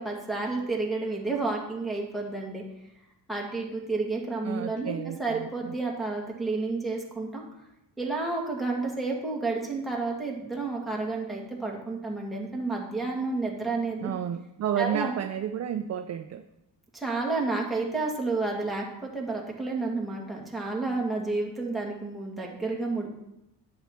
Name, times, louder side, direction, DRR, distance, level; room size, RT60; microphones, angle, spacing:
voice 1, 0.0-2.6 3.3-7.4 8.0-14.1 14.8-15.1 16.9-23.1, right 3 dB, ahead, -3 dB, 1.8 m, -30 dB
voice 2, 4.4-5.8 14.0-16.4, right 9 dB, 40° right, 6 dB, 0.4 m, -31 dB
10.5 x 7.2 x 4.4 m, 0.86 s
cardioid pair, 155°, 43 cm